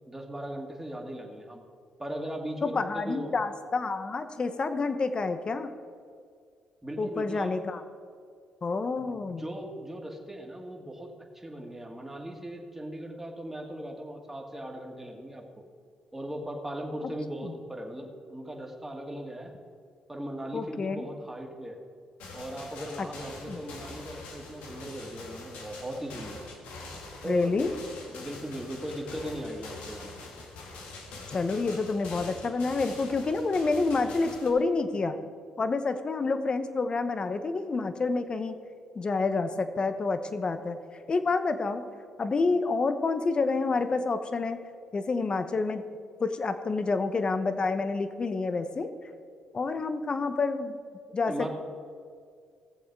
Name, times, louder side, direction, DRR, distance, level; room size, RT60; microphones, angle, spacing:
voice 1, 0.1-1.6 2.0-3.3 6.8-7.6 9.0-15.6 16.1-19.5 20.1-21.8 22.3-26.4 27.2-27.7 28.0-30.2 51.3-51.5, right 1 dB, 10° right, 1 dB, 2.1 m, -38 dB
voice 2, 2.6-5.7 7.0-7.8 8.6-9.5 17.4-17.5 20.5-21.0 23.0-23.1 23.5-23.6 27.2-27.7 31.3-35.2 35.6-38.5 38.9-40.8 41.1-41.8 42.2-44.6 44.9-45.8 46.2-48.9 49.5-50.8 51.1-51.5, left 3 dB, 40° left, 10 dB, 1.0 m, -28 dB
sound 1, 22.2-34.5, left 3 dB, 90° left, 1.8 m, -44 dB
18.0 x 7.2 x 4.7 m, 2.2 s
cardioid pair, 75°, 2 cm